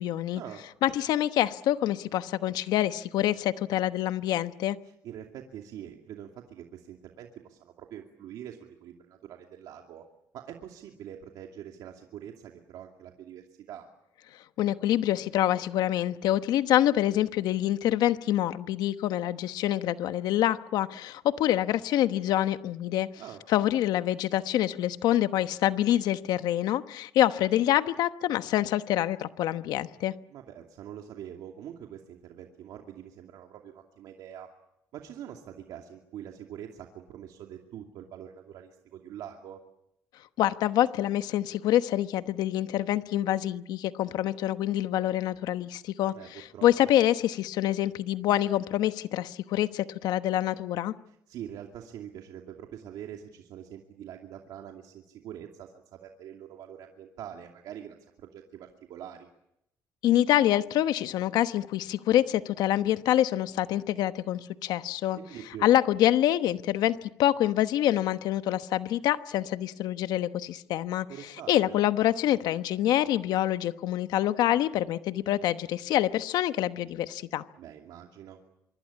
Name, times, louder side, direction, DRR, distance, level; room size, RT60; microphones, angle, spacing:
voice 1, 0.0-0.4 0.8-4.8 14.6-23.1 23.5-30.1 40.4-50.9 60.0-65.2 65.6-77.4, left 13 dB, 80° left, 12 dB, 1.1 m, -26 dB
voice 2, 4.8-10.0 10.3-13.9 23.2-23.4 30.3-34.5 34.9-39.6 46.1-46.9 51.1-59.3 65.1-65.7 71.1-71.8 77.6-78.4, right 10 dB, 75° right, 2 dB, 2.5 m, -44 dB
25.5 x 24.0 x 8.5 m, 0.80 s
cardioid pair, 115°, 7 cm